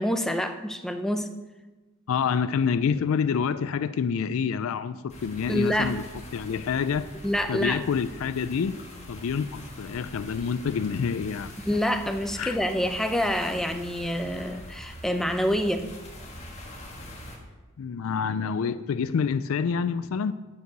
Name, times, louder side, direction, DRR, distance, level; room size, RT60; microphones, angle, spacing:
voice 1, 0.0-1.3 5.5-6.0 7.2-7.8 11.7-15.9, equal, ahead, 7 dB, 0.5 m, -27 dB
voice 2, 2.1-6.0 6.3-7.1 7.5-8.8 9.1-11.5 12.4-12.6 17.8-20.3, left 6 dB, 70° left, 13 dB, 0.4 m, -27 dB
sound 1, 5.1-17.4, left 1 dB, 30° left, 1.6 m, -43 dB
10.5 x 4.8 x 6.7 m, 1.2 s
head